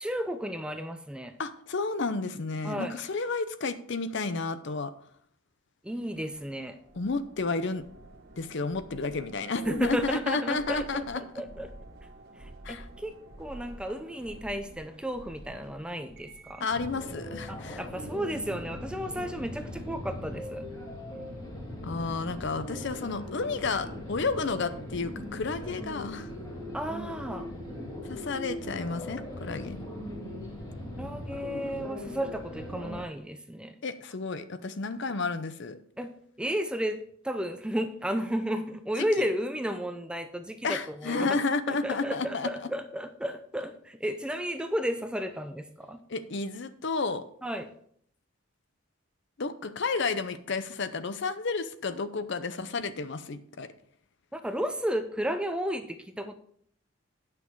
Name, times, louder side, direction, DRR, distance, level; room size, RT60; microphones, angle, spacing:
voice 1, 0.0-1.4 2.6-3.0 5.8-6.8 9.7-11.7 12.4-16.7 17.5-20.7 26.7-27.5 31.0-33.8 36.0-36.1 36.4-37.0 37.2-41.4 41.7-46.0 47.4-47.7 54.3-56.3, equal, 5° right, 8 dB, 0.5 m, -33 dB
voice 2, 1.4-4.9 6.9-7.9 8.4-11.2 12.6-12.9 16.6-17.8 21.8-26.3 28.1-29.9 33.8-35.8 40.6-42.5 46.1-47.2 49.4-53.7, left 4 dB, 55° left, 12 dB, 0.6 m, -31 dB
sound 1, 6.1-16.7, right 2 dB, 50° right, 1.2 m, -49 dB
sound 2, 16.7-33.0, left 1 dB, 20° left, 2.6 m, -39 dB
9.5 x 6.0 x 4.6 m, 0.64 s
head